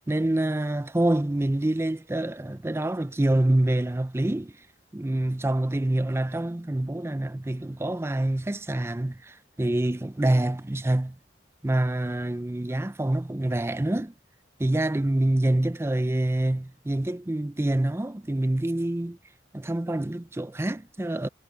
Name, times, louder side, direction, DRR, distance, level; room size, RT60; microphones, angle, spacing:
voice 1, 0.1-4.5 4.9-11.2 11.6-14.1 14.6-19.2 19.5-21.3, right 1 dB, 15° right, 0.4 m, -26 dB
head